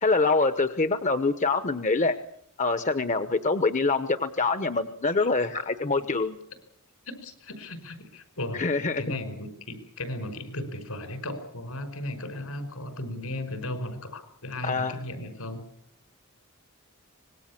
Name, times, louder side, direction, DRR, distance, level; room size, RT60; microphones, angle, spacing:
voice 1, 0.0-2.2 2.6-6.4 8.5-9.0 14.6-14.9, left 3 dB, 35° left, 10 dB, 1.0 m, -25 dB
voice 2, 7.1-8.7 9.0-15.6, left 1 dB, 75° left, 9 dB, 5.4 m, -36 dB
25.0 x 20.5 x 7.4 m, 0.68 s
head